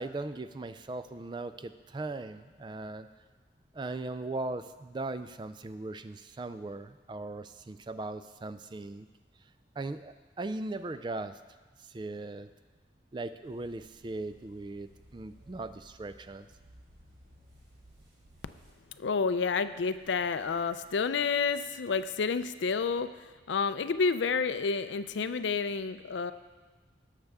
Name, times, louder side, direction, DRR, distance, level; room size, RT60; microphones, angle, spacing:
voice 1, 0.0-3.1 3.7-9.1 9.8-11.4 11.8-12.5 13.1-16.5, right 2 dB, 25° right, 11 dB, 0.3 m, -39 dB
sound 1, 13.4-20.9, right 1 dB, 90° right, 3.3 m, -60 dB
voice 2, 19.0-26.3, left 5 dB, 80° left, 12 dB, 0.4 m, -30 dB
17.5 x 6.6 x 3.5 m, 1.3 s
head